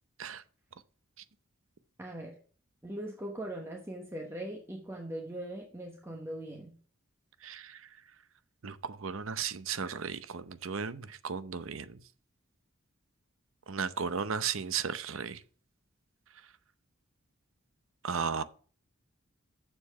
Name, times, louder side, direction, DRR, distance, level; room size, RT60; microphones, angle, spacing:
voice 1, 2.0-2.4 2.8-6.7, right 1 dB, 10° right, 1.1 m, -40 dB
voice 2, 7.4-7.8 8.6-12.0 13.7-15.4 18.0-18.4, right 6 dB, 70° right, 0.7 m, -35 dB
7.1 x 7.0 x 5.8 m
head